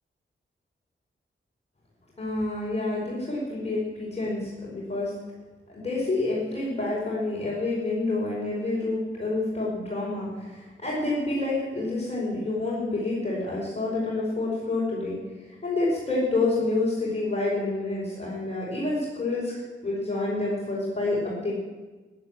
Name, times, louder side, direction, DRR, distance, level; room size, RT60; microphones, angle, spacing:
voice 1, 2.2-5.1 5.7-15.2 15.6-19.5 19.8-21.5, left 2 dB, 30° left, -6 dB, 5.1 m, -28 dB
17.0 x 11.0 x 7.6 m, 1.3 s
wide cardioid pair, 105°, 21 cm